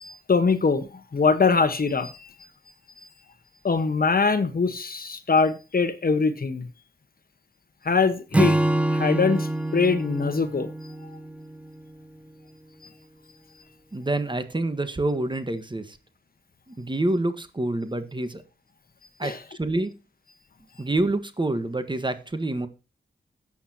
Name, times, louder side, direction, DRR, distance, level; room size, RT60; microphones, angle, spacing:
voice 1, 0.0-2.3 3.6-6.7 7.8-8.6 8.9-10.7 19.2-19.4, left 4 dB, 50° left, 1.2 m, -23 dB
Acoustic guitar / Strum, 8.3-11.8, right 1 dB, 5° right, 0.8 m, -25 dB
voice 2, 13.9-16.0 16.7-18.4 19.2-19.9 20.8-22.7, right 2 dB, 25° right, 1.4 m, -27 dB
13.5 x 8.7 x 2.9 m
cardioid pair, 70°, 19 cm